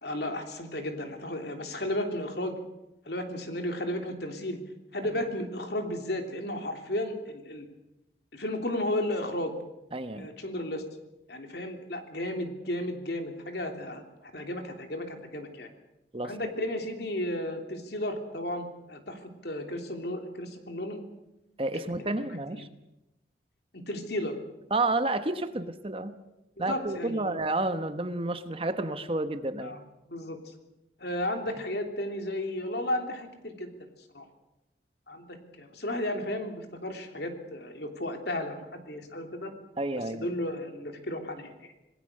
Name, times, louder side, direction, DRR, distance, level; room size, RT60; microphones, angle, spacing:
voice 1, 0.0-2.6 3.0-4.6 4.9-7.7 8.3-9.5 10.1-10.8 11.3-15.7 16.2-21.0 22.0-22.2 22.5-22.7 23.7-24.4 26.6-27.3 29.6-29.8 30.1-30.5 31.0-33.7 34.1-34.2 35.1-39.5 40.1-41.7, left 1 dB, 65° left, 5 dB, 3.2 m, -34 dB
voice 2, 9.9-10.3 16.1-16.5 21.6-22.7 24.7-26.2 26.6-29.7 39.8-40.3, right 2 dB, 30° right, 10 dB, 1.1 m, -30 dB
27.0 x 18.5 x 6.6 m, 0.93 s
head